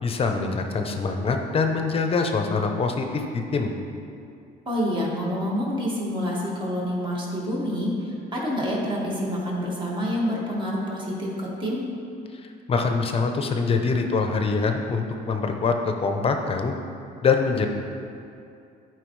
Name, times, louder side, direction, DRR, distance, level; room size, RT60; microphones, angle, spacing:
voice 1, 0.0-3.7 12.3-16.7 17.2-17.7, left 4 dB, 35° left, 4 dB, 0.7 m, -24 dB
voice 2, 4.7-11.8, equal, 30° right, -4 dB, 1.8 m, -27 dB
11.5 x 4.7 x 3.2 m, 2.5 s
cardioid pair, 110°, 17 cm